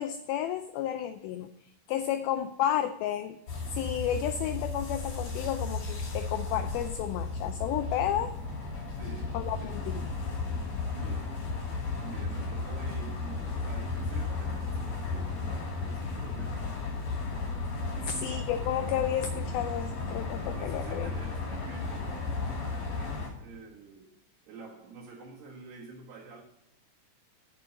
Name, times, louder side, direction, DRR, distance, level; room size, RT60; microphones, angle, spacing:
voice 1, 0.0-1.5 1.9-3.4 3.7-8.3 9.3-10.0 18.1-21.1, left 10 dB, 80° left, 2.2 m, -32 dB
sound 1, 3.5-23.3, left 3 dB, 45° left, 3.1 m, -34 dB
voice 2, 8.9-9.9 10.8-11.4 12.0-16.8 17.9-18.6 20.5-24.1 24.5-26.4, right 4 dB, 75° right, 3.7 m, -47 dB
7.8 x 7.3 x 7.6 m
omnidirectional pair, 4.7 m